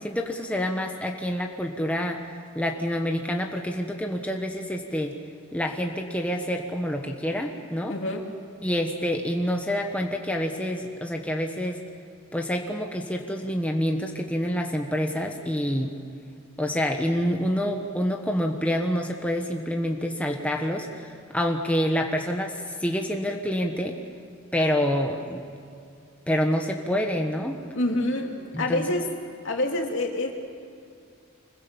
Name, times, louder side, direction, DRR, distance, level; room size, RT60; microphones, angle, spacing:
voice 1, 0.0-2.2 2.5-5.1 5.5-8.0 8.6-11.8 12.3-16.0 16.6-24.0 24.5-25.4 26.3-27.6 28.5-28.8, equal, 5° left, 2 dB, 1.2 m, -27 dB
voice 2, 7.9-8.3 27.7-29.1 29.4-30.3, left 1 dB, 65° left, 1 dB, 3.0 m, -27 dB
25.0 x 21.5 x 7.1 m, 2.4 s
head